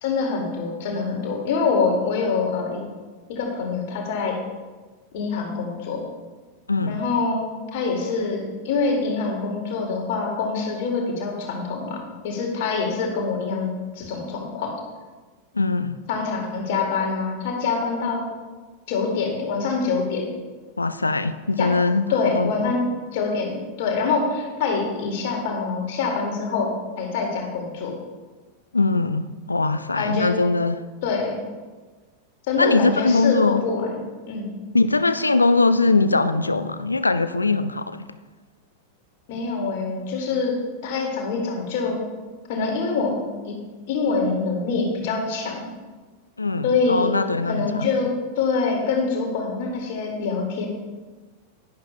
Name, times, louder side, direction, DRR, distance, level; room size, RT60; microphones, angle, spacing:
voice 1, 0.0-2.8 3.3-4.4 5.1-6.0 6.9-14.8 16.1-18.3 18.9-20.3 21.6-21.7 22.1-22.8 23.1-28.0 29.9-30.3 31.0-31.4 32.5-34.5 39.3-40.6 40.8-42.0 42.5-43.2 43.4-43.6 43.9-45.7 46.6-47.1 47.5-50.7, left 4 dB, 50° left, 2.1 m, -25 dB
voice 2, 6.7-7.0 15.6-16.0 20.8-22.0 22.3-22.5 28.7-30.8 32.6-33.6 34.7-38.0 46.4-47.9, left 3 dB, 80° left, 0.4 m, -21 dB
11.0 x 10.5 x 2.2 m
figure-of-eight pair, 90°, 0 cm